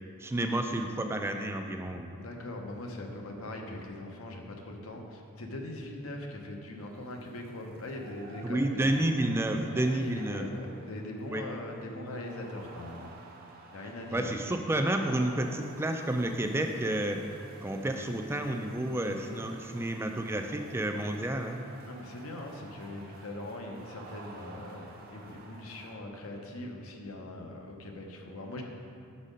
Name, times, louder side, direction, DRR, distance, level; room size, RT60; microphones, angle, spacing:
voice 1, 0.2-2.1 8.4-10.4 11.3-11.4 14.1-17.2 17.6-21.6, right 1 dB, 10° right, 4 dB, 0.3 m, -30 dB
voice 2, 2.2-9.0 9.9-13.1 13.7-14.4 21.8-28.6, left 1 dB, 70° left, 2 dB, 0.8 m, -41 dB
sound 1, 6.8-25.9, right 3 dB, 40° right, 0.7 m, -52 dB
6.2 x 4.1 x 5.0 m, 2.5 s
head